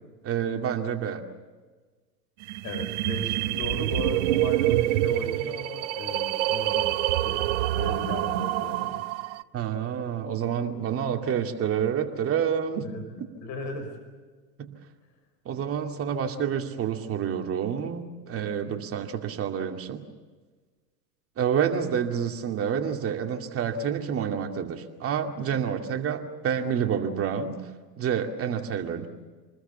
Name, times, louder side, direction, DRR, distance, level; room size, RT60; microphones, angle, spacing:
voice 1, 0.2-1.2 9.5-12.9 13.2-13.3 14.6-14.7 15.5-20.0 21.4-27.6 28.0-29.1, right 8 dB, 25° right, 4 dB, 2.4 m, -28 dB
sound 1, 2.4-9.4, right 15 dB, 50° right, 0.9 m, -26 dB
voice 2, 2.6-6.9 7.2-7.4 7.7-9.0 12.8-13.0 13.4-14.0, left 3 dB, 35° left, 5 dB, 5.5 m, -36 dB
27.5 x 20.5 x 7.0 m, 1.4 s
figure-of-eight pair, 95°, 49 cm